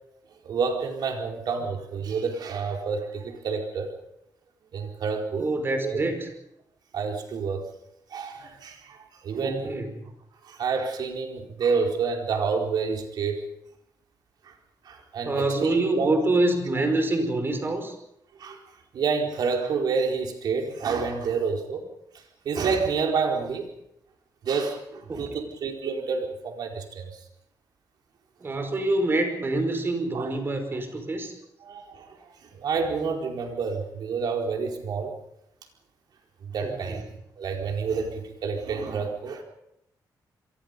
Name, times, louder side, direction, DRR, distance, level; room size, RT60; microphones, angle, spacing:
voice 1, 0.4-3.9 4.7-5.5 5.8-6.0 6.9-7.6 8.1-9.8 10.4-13.4 14.4-14.5 14.8-16.1 18.4-18.6 18.9-21.8 22.4-23.7 24.4-27.1 30.1-30.3 31.6-32.2 32.5-35.1 36.4-37.0 37.4-39.4, right 5 dB, 70° right, 2 dB, 4.5 m, -28 dB
voice 2, 5.3-6.3 9.3-9.9 15.2-18.0 25.1-25.4 28.4-31.3 36.6-37.0, right 2 dB, 30° right, 6 dB, 5.3 m, -26 dB
28.0 x 23.0 x 5.4 m, 0.79 s
cardioid pair, 125°, 7 cm